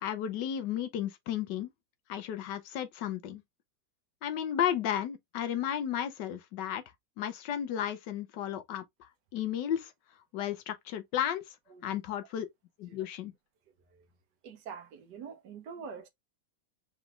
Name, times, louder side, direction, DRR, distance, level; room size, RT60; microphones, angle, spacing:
voice 1, 0.0-1.7 2.1-3.4 4.2-6.8 7.2-9.9 10.3-11.4 11.8-12.5 12.8-13.3, left 10 dB, 80° left, 1.3 m, -33 dB
voice 2, 14.4-16.1, right 6 dB, 75° right, 1.4 m, -45 dB
5.0 x 3.1 x 2.4 m
omnidirectional pair, 1.9 m